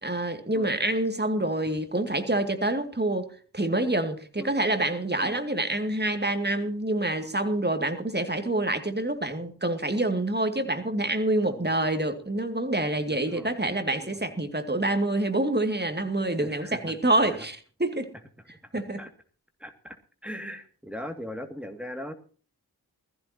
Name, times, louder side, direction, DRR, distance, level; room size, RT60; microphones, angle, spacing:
voice 1, 0.0-3.3 3.5-18.1 18.7-19.0, right 1 dB, 25° right, 2.4 m, -27 dB
voice 2, 13.1-13.5 13.9-14.2 16.4-17.0 19.0-19.1 19.6-20.0 20.2-22.1, equal, 5° right, 2.4 m, -39 dB
21.0 x 14.5 x 2.9 m
wide cardioid pair, 45°, 38 cm